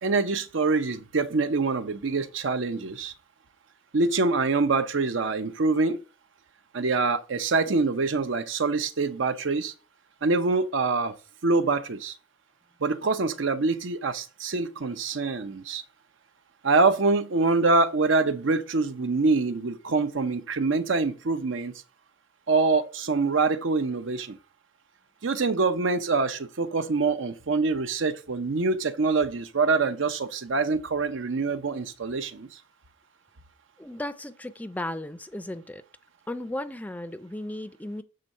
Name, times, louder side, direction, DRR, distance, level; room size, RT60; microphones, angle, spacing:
voice 1, 0.0-3.1 3.9-6.0 6.7-9.7 10.2-11.1 11.4-12.1 12.8-15.8 16.6-21.7 22.5-24.4 25.2-32.5, right 3 dB, 75° right, 0.7 m, -25 dB
voice 2, 33.8-35.8 36.3-38.0, left 1 dB, 10° left, 0.4 m, -35 dB
7.6 x 3.8 x 5.4 m
head